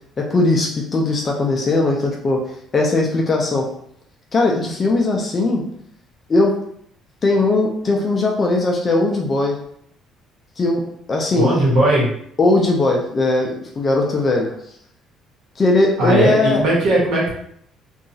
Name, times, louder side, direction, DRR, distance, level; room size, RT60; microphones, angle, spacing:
voice 1, 0.2-2.4 2.7-3.7 4.3-5.6 6.3-6.6 7.2-9.6 10.6-10.8 11.1-11.5 12.4-14.5 15.6-16.6, left 2 dB, 25° left, 0 dB, 0.3 m, -18 dB
voice 2, 11.3-12.1 16.0-17.3, right 1 dB, 70° right, -4 dB, 1.1 m, -17 dB
2.8 x 2.3 x 2.6 m, 0.68 s
cardioid pair, 165°, 0 cm